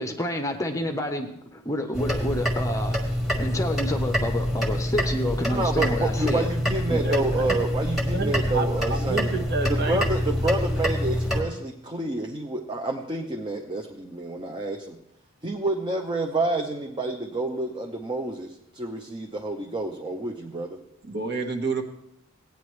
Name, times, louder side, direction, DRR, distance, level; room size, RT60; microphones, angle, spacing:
voice 1, 0.0-6.5 6.9-7.0, left 1 dB, 15° left, 6 dB, 0.7 m, -29 dB
sound 1, 1.9-11.4, equal, ahead, 1.4 m, -26 dB
voice 2, 5.5-9.3 9.7-15.0 15.4-20.8, right 2 dB, 20° right, 2 dB, 0.6 m, -29 dB
voice 3, 6.7-7.6 8.1-10.0 21.0-21.8, right 3 dB, 50° right, 4 dB, 1.2 m, -30 dB
16.5 x 9.3 x 3.2 m, 0.79 s
head